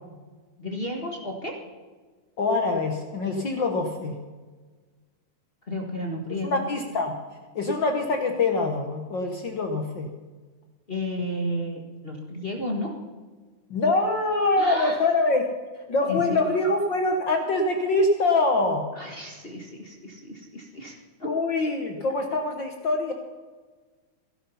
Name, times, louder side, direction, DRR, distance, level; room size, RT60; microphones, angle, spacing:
voice 1, 0.6-1.6 5.7-6.6 10.9-12.9 14.6-15.0 16.1-16.4 18.9-20.9 21.2-21.3, left 1 dB, 30° left, 0 dB, 1.1 m, -32 dB
voice 2, 2.4-4.2 6.4-7.1 7.5-10.1 13.7-15.4 15.9-18.9 21.2-23.1, left 2 dB, 55° left, 4 dB, 1.3 m, -24 dB
16.5 x 11.5 x 5.6 m, 1.4 s
omnidirectional pair, 3.5 m